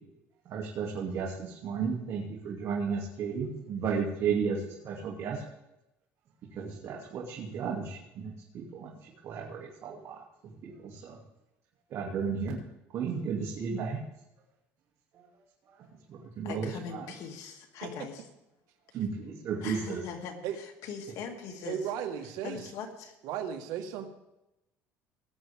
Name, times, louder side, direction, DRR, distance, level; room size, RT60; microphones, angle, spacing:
voice 1, 0.5-5.4 6.5-8.9 9.2-10.2 10.6-11.2 11.9-12.6 12.9-14.0 16.1-16.7 17.0-17.1 18.9-20.0, right 6 dB, 55° right, -3 dB, 2.7 m, -33 dB
voice 2, 16.4-18.2 19.6-21.9 22.4-23.1, left 6 dB, 70° left, 3 dB, 2.5 m, -41 dB
voice 3, 21.7-22.6 23.2-24.1, right 8 dB, 75° right, 5 dB, 1.7 m, -35 dB
19.0 x 10.5 x 3.6 m, 0.90 s
cardioid pair, 110°, 6 cm